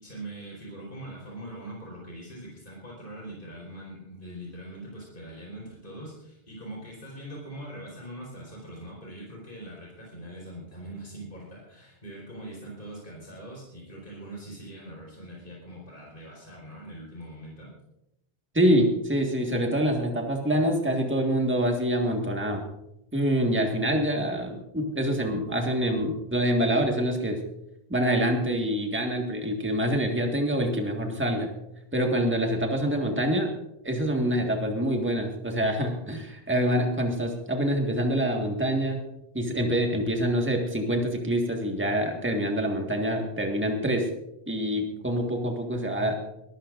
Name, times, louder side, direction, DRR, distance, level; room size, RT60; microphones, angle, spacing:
voice 1, 0.0-17.7, right 1 dB, 50° left, -3 dB, 4.8 m, -42 dB
voice 2, 18.5-22.6 23.1-27.4 27.9-31.5 31.9-33.5 33.8-39.0 39.3-44.1 44.5-46.2, equal, 10° right, 2 dB, 1.8 m, -26 dB
22.5 x 14.5 x 2.6 m, 0.87 s
omnidirectional pair, 1.1 m